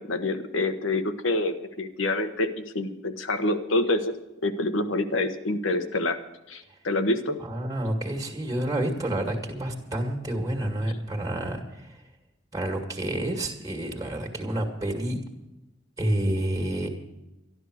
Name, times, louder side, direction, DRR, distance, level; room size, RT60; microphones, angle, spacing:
voice 1, 0.0-4.1 4.4-7.4, left 2 dB, 75° left, 8 dB, 1.2 m, -27 dB
voice 2, 7.4-12.0 12.5-15.2 16.0-16.9, right 1 dB, 20° right, 3 dB, 1.9 m, -29 dB
13.0 x 12.0 x 6.3 m, 0.99 s
head